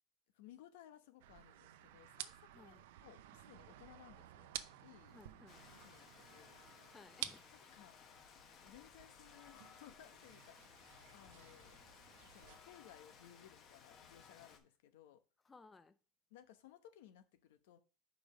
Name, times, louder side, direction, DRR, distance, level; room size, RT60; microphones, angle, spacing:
voice 1, 0.3-2.7 3.0-4.5 4.8-5.2 5.7-6.9 7.5-8.0 8.6-11.8 12.2-15.2 16.3-17.8, left 11 dB, 85° left, 1.1 m, -61 dB
sound 1, 1.2-12.6, right 13 dB, 85° right, 0.6 m, -53 dB
voice 2, 2.5-2.8 5.1-5.7 6.9-7.6 15.4-15.9, left 4 dB, 10° left, 0.5 m, -60 dB
Rain, 5.5-14.6, left 6 dB, 35° left, 1.0 m, -60 dB
5.2 x 5.2 x 6.2 m
supercardioid pair, 165°, 0 cm